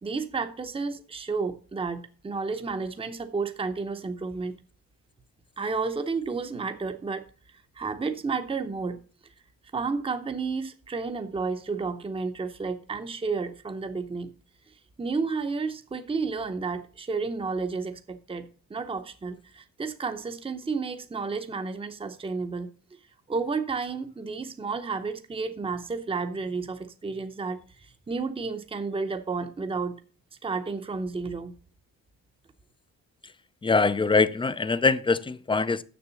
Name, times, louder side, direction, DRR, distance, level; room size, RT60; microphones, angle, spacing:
voice 1, 0.0-4.5 5.6-7.3 7.8-9.0 9.7-14.3 15.0-22.7 23.3-30.0 30.4-31.5, right 4 dB, 15° right, 0.7 m, -31 dB
voice 2, 33.6-35.8, left 4 dB, 15° left, 0.4 m, -23 dB
6.9 x 6.6 x 6.9 m
cardioid pair, 125°, 36 cm